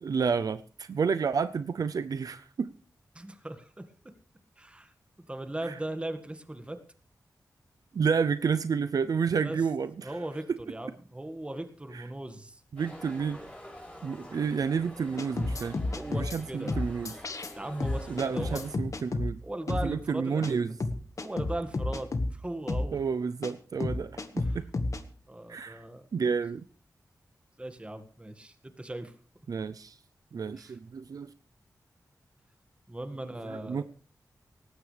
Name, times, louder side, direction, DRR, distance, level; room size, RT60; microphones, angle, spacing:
voice 1, 0.0-2.7 5.7-5.8 7.9-10.2 11.9-12.1 12.7-13.4 14.0-15.8 16.1-17.1 18.1-19.4 19.7-20.7 22.9-24.7 25.5-25.8 26.1-26.6 29.5-30.0 30.3-31.3 33.5-33.8, right 6 dB, 65° right, 12 dB, 0.6 m, -30 dB
voice 2, 3.2-4.1 4.6-4.9 5.3-6.8 9.4-9.6 10.0-12.6 15.9-16.7 17.5-18.6 19.4-20.6 21.2-23.0 24.4-24.6 25.3-26.1 27.6-29.1 30.6-30.8 32.9-33.8, right 1 dB, 15° right, 8 dB, 1.8 m, -38 dB
sound 1, 12.8-18.7, left 1 dB, 15° left, 7.1 m, -47 dB
sound 2, 15.2-16.4 16.7-17.5 17.8-19.3 19.7-19.9 20.4-20.5 20.8-22.3 22.7-22.9 23.4-23.5 23.8-25.0, left 2 dB, 55° left, 1.6 m, -31 dB
18.5 x 15.5 x 3.4 m, 0.42 s
wide cardioid pair, 110°, 7 cm